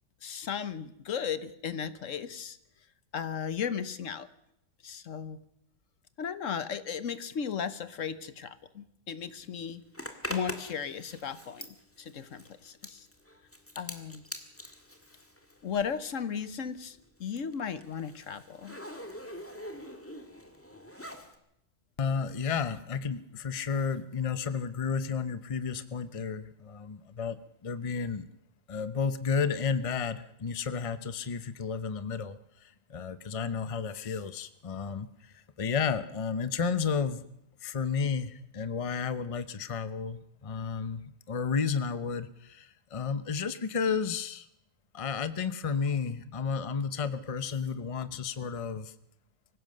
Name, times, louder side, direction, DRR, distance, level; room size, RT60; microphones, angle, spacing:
voice 1, 0.2-2.6 3.1-4.3 4.8-5.4 6.2-9.8 10.3-13.1 13.8-14.2 15.6-18.8, left 7 dB, 75° left, 13 dB, 1.4 m, -36 dB
Zipper (clothing), 9.9-16.1 16.4-21.4, left 1 dB, 10° left, 1.8 m, -44 dB
voice 2, 22.0-27.4 27.6-28.3 28.7-37.3 37.6-44.5 44.9-48.9, left 6 dB, 30° left, 13 dB, 0.8 m, -32 dB
24.5 x 16.0 x 6.6 m, 0.78 s
omnidirectional pair, 1.3 m